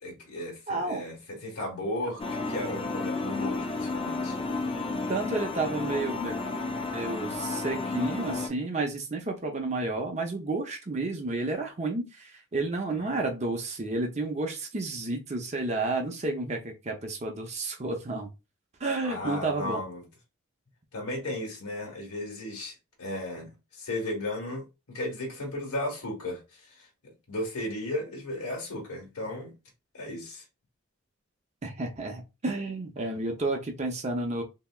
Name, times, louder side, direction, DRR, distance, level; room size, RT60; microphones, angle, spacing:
voice 1, 0.0-4.4 12.9-13.3 19.0-20.1 20.9-29.5 29.9-30.4, left 1 dB, 90° left, 1.3 m, -35 dB
voice 2, 0.7-1.0 5.1-6.4 6.9-18.3 18.8-19.8 31.6-34.4, right 2 dB, 30° right, 0.6 m, -31 dB
sound 1, 2.2-8.5, left 3 dB, 25° left, 0.4 m, -32 dB
3.3 x 2.8 x 2.3 m
head